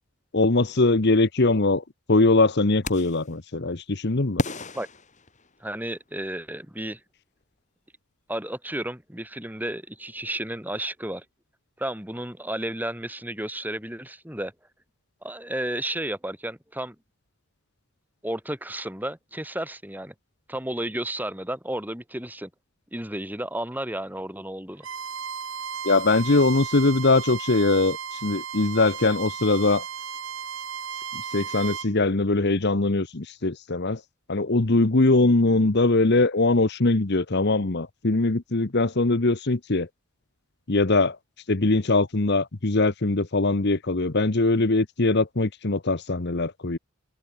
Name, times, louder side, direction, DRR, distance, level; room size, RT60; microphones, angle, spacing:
voice 1, 0.3-1.8 2.1-4.4 25.8-29.8 31.3-34.0 34.3-39.9 40.7-41.2 41.5-46.8, left 2 dB, 50° left, 1.1 m, -21 dB
sound 1, 2.8-3.3 4.4-5.9, left 1 dB, 35° left, 6.1 m, -32 dB
voice 2, 5.6-7.0 8.3-11.2 11.8-14.5 15.2-17.0 18.2-20.1 20.5-22.5 22.9-24.9, right 1 dB, 10° right, 4.3 m, -32 dB
Bowed string instrument, 24.8-31.9, right 7 dB, 60° right, 2.4 m, -35 dB
head